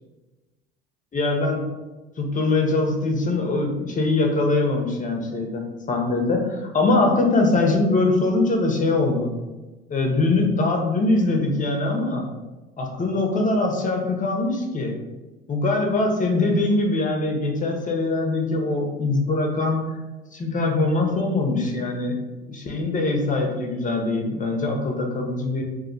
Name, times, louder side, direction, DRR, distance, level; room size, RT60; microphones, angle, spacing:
voice 1, 1.1-1.6 2.2-5.6 5.9-9.3 9.9-12.2 12.8-15.0 15.5-20.0 20.3-22.1 22.5-25.6, left 2 dB, 25° left, 2 dB, 0.7 m, -22 dB
2.3 x 2.1 x 3.9 m, 1.1 s
hypercardioid pair, 70°, 30 cm